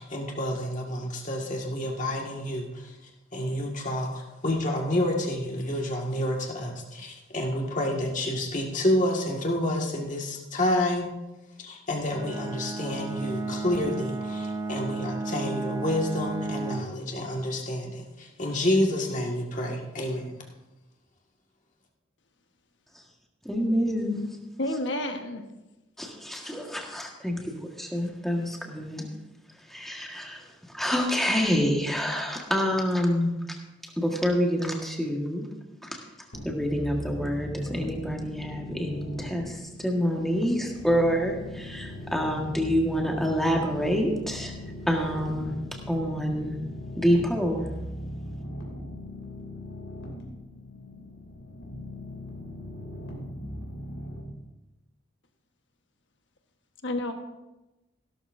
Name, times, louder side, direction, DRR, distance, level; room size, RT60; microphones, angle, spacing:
voice 1, 0.0-2.9 3.3-11.1 11.6-20.2, left 1 dB, 40° left, 0 dB, 1.9 m, -29 dB
Bowed string instrument, 12.1-17.0, right 3 dB, 20° right, 0.5 m, -33 dB
voice 2, 23.4-24.2 26.0-27.4 27.8-29.1 29.7-30.5 30.7-33.3 33.8-35.5 35.8-36.0 36.4-44.6 44.9-45.5 45.9-46.5 47.0-47.7, equal, ahead, 0 dB, 1.6 m, -27 dB
voice 3, 24.6-25.4 56.8-57.1, left 1 dB, 65° left, 5 dB, 1.3 m, -29 dB
sound 1, 36.3-54.2, left 1 dB, 85° left, 3.0 m, -39 dB
16.0 x 12.0 x 2.7 m, 1.0 s
head